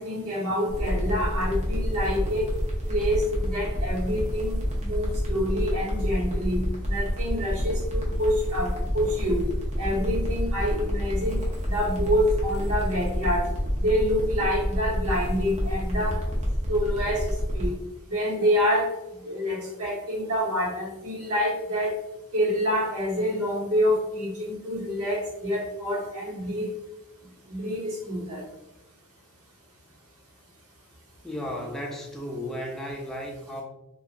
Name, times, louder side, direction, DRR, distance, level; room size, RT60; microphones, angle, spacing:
voice 1, 0.0-2.5 2.9-9.5 9.8-11.4 11.6-13.4 13.8-16.2 16.7-17.7 18.1-18.9 19.2-21.9 22.3-26.7 27.5-28.4, equal, 85° right, -4 dB, 1.1 m, -27 dB
sound 1, 0.7-17.7, equal, 30° right, 0.6 m, -28 dB
voice 2, 31.2-33.6, equal, ahead, -1 dB, 0.3 m, -34 dB
3.0 x 2.4 x 2.5 m, 0.93 s
head